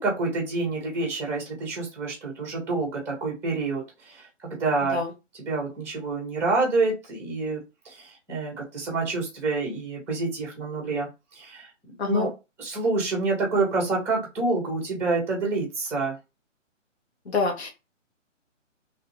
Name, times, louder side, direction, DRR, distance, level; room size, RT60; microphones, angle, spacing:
voice 1, 0.0-5.0 5.5-11.1 11.4-11.7 12.1-12.3 12.6-16.2, right 3 dB, 5° right, -1 dB, 0.9 m, -27 dB
voice 2, 4.8-5.1 12.0-12.3 17.2-17.7, left 4 dB, 55° left, 2 dB, 1.1 m, -27 dB
3.1 x 2.8 x 3.0 m, 0.26 s
hypercardioid pair, 150°, 38 cm